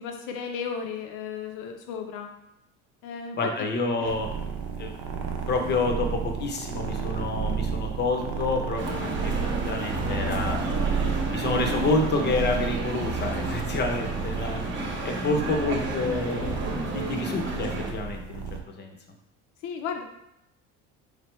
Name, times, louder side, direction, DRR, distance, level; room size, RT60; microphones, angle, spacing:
voice 1, 0.0-2.3 3.0-3.7 4.0-4.1 19.6-20.0, left 6 dB, 70° left, 4 dB, 0.7 m, -34 dB
voice 2, 3.3-4.3 4.8-4.9 5.5-9.3 9.6-10.6 11.3-14.6 15.0-16.6 16.9-18.9, left 3 dB, 30° left, 4 dB, 0.7 m, -28 dB
sound 1, 4.0-18.6, right 6 dB, 70° right, 0.7 m, -32 dB
sound 2, 8.8-17.9, right 1 dB, 35° right, 0.8 m, -32 dB
3.9 x 3.3 x 3.1 m, 0.84 s
cardioid pair, 130°, 32 cm